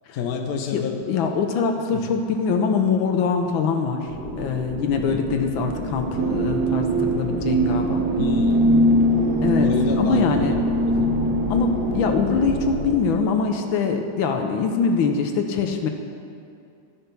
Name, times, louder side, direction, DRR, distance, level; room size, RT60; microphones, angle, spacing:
voice 1, 0.1-1.0 1.9-2.0 5.1-5.3 8.2-8.7 9.6-11.1, left 6 dB, 55° left, 4 dB, 1.2 m, -29 dB
voice 2, 0.7-8.1 9.4-9.7 10.0-10.5 11.5-15.9, left 5 dB, 80° left, 4 dB, 1.5 m, -23 dB
Wind ambience, 4.1-12.9, equal, 25° right, 2.5 m, -30 dB
sound 1, 6.2-12.3, right 1 dB, 70° right, 0.8 m, -22 dB
12.0 x 5.7 x 6.7 m, 2.5 s
omnidirectional pair, 2.2 m